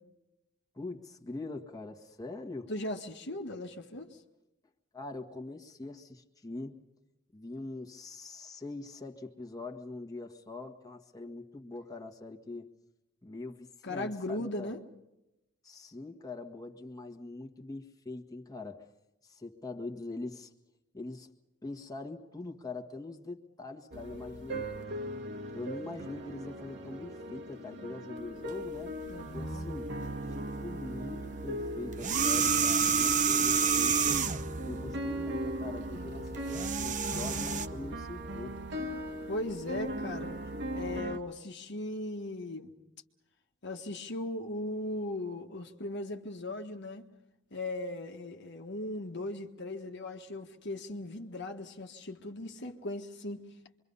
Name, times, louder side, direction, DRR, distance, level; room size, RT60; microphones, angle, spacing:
voice 1, 0.7-2.7 4.9-6.8 7.3-12.7 13.2-14.7 15.6-18.9 19.2-20.5 20.9-21.3 21.6-24.7 25.0-25.2 25.5-29.0 29.3-29.9 30.3-34.2 34.6-38.6, left 2 dB, 20° left, 1 dB, 1.7 m, -43 dB
voice 2, 2.7-4.2 13.8-14.8 29.1-29.7 39.3-40.3 40.7-42.7 43.6-47.0 47.5-53.4, left 1 dB, 60° left, 4 dB, 1.6 m, -38 dB
sound 1, 23.9-41.2, right 1 dB, 60° right, 1.9 m, -39 dB
sound 2, 31.9-34.5 36.3-37.7, right 6 dB, 40° right, 0.9 m, -28 dB
26.5 x 24.0 x 5.5 m, 0.93 s
head